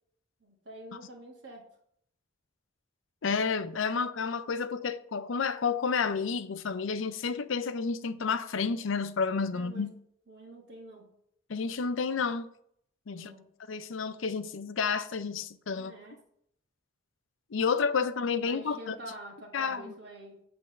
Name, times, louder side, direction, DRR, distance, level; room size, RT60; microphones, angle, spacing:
voice 1, 0.4-1.7 9.5-9.9 10.3-11.1 13.1-13.5 15.7-16.2 18.4-20.4, right 1 dB, 60° right, 1.5 m, -47 dB
voice 2, 3.2-9.9 11.5-12.5 13.1-13.3 13.7-15.9 17.5-19.0 19.5-19.9, left 5 dB, 90° left, 0.5 m, -30 dB
8.5 x 3.4 x 6.6 m
head